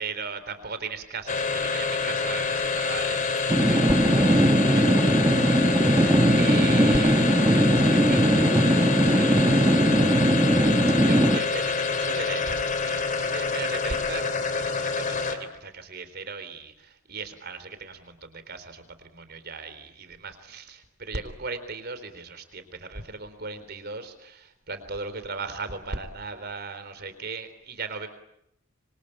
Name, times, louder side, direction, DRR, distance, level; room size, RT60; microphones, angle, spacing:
voice 1, 0.0-14.3 14.5-28.1, right 4 dB, 50° right, 11 dB, 3.8 m, -38 dB
sound 1, 1.3-15.6, left 4 dB, 40° left, 3.1 m, -27 dB
sound 2, 3.5-11.4, right 1 dB, 15° right, 1.4 m, -20 dB
26.5 x 25.0 x 8.8 m, 0.79 s
head